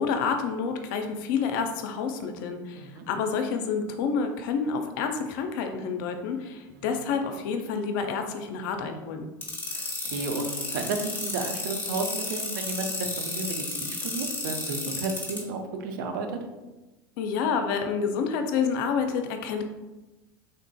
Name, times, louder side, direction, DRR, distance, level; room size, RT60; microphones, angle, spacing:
voice 1, 0.0-9.3 17.2-19.6, left 5 dB, 65° left, 6 dB, 0.4 m, -28 dB
sound 1, 9.4-15.4, left 3 dB, 15° left, 1.0 m, -32 dB
voice 2, 9.7-16.4, right 3 dB, 65° right, 4 dB, 0.5 m, -33 dB
3.7 x 2.4 x 2.2 m, 1.1 s
hypercardioid pair, 85°, 12 cm